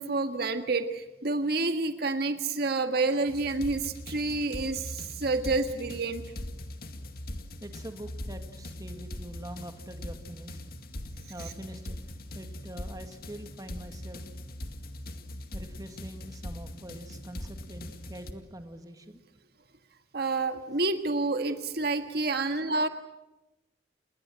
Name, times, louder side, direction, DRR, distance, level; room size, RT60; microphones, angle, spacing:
voice 1, 0.0-6.2 20.1-22.9, right 3 dB, 60° right, 8 dB, 1.7 m, -29 dB
sound 1, 3.3-18.3, left 1 dB, 60° left, 2.1 m, -41 dB
voice 2, 7.6-10.6 11.3-12.0 12.3-14.3 15.5-19.2 22.7-22.8, right 1 dB, 20° right, 7 dB, 2.0 m, -44 dB
29.0 x 20.5 x 7.6 m, 0.96 s
head